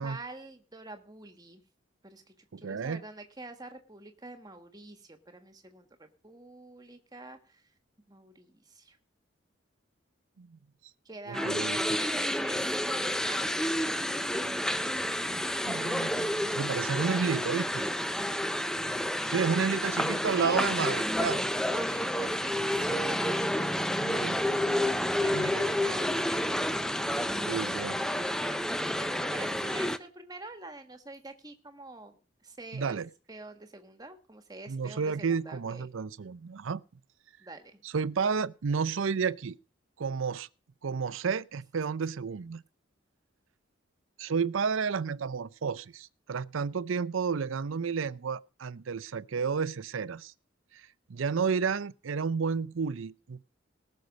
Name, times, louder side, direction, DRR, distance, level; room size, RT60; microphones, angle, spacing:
voice 1, 0.0-1.6 2.0-7.6 8.1-9.0 11.0-11.5 12.0-14.3 16.6-17.8 18.6-19.7 20.3-20.6 21.7-23.7 25.2-26.5 27.0-33.0 33.3-35.9 37.4-37.8, right 2 dB, 20° right, 1.6 m, -46 dB
voice 2, 2.5-3.0 10.4-10.6 11.3-11.8 15.6-16.3 16.6-17.8 19.3-21.4 24.0-24.4 25.2-25.5 27.5-28.0 32.7-33.1 34.7-36.8 37.8-39.6 40.0-40.5 40.8-42.6 44.2-50.3 50.7-53.4, right 5 dB, 85° right, 0.5 m, -31 dB
sound 1, 11.3-30.0, left 1 dB, 5° left, 0.5 m, -30 dB
18.5 x 6.5 x 5.2 m
head